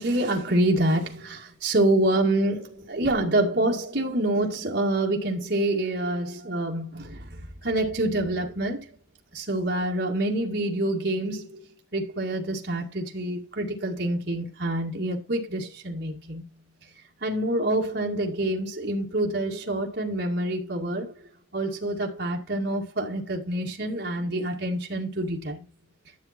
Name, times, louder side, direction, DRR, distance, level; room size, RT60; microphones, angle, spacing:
voice 1, 0.0-8.9 9.3-11.6 11.9-16.4 16.8-16.9 17.2-25.7, right 1 dB, 55° right, 2.2 m, -27 dB
12.0 x 7.1 x 4.4 m
head